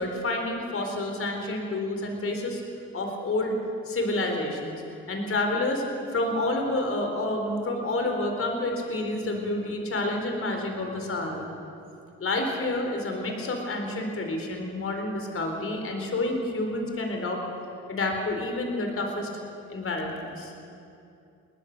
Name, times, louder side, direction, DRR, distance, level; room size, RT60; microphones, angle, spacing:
voice 1, 0.0-2.6 2.9-3.6 3.9-4.8 5.1-5.9 6.1-11.5 12.2-17.4 17.9-19.3 19.7-20.5, left 2 dB, 45° left, 3 dB, 4.3 m, -29 dB
21.5 x 19.0 x 6.8 m, 2.6 s
cardioid pair, 90°, 30 cm